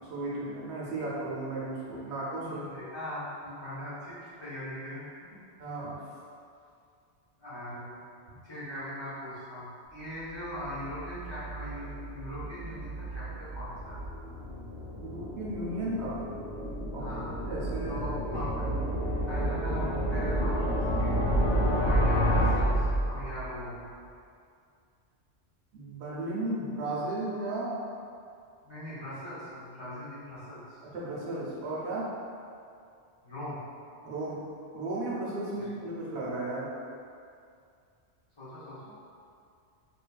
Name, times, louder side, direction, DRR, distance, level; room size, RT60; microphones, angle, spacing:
voice 1, 0.1-2.6 5.6-6.1 8.3-8.4 15.0-16.2 16.9-17.0 17.5-18.9 25.7-27.8 30.8-32.1 34.0-34.4 34.7-36.7, right 2 dB, 75° right, -6 dB, 0.9 m, -35 dB
voice 2, 2.4-5.4 7.4-8.0 8.4-14.0 16.9-17.3 17.9-18.6 19.3-21.2 21.7-23.9 28.6-30.8 33.2-33.6 35.6-35.7 38.4-38.9, left 1 dB, 25° left, -13 dB, 0.8 m, -40 dB
sound 1, 10.6-23.6, equal, 85° left, 1.0 m, -30 dB
2.9 x 2.4 x 2.2 m, 2.4 s
omnidirectional pair, 1.1 m